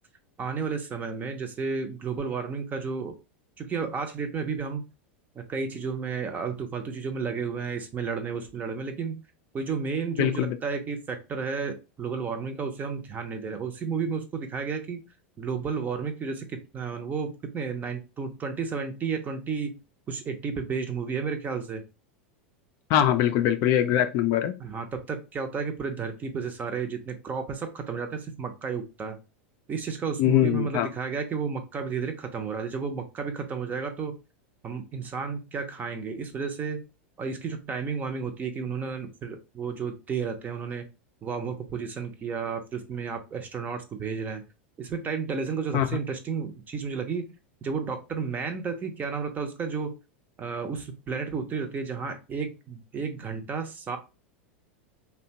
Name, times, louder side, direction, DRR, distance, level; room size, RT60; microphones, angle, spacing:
voice 1, 0.4-3.1 3.6-4.8 5.3-9.2 9.5-15.0 15.4-19.8 20.1-21.8 24.6-29.2 29.7-34.1 34.6-36.8 37.2-40.9 41.2-44.4 44.8-47.3 47.6-49.9 50.4-54.0, right 5 dB, 25° right, 0.6 m, -32 dB
voice 2, 10.2-10.6 22.9-24.6 30.2-30.9 45.7-45.9, left 11 dB, 50° left, 0.4 m, -22 dB
2.8 x 2.2 x 2.7 m
hypercardioid pair, 105°, 7 cm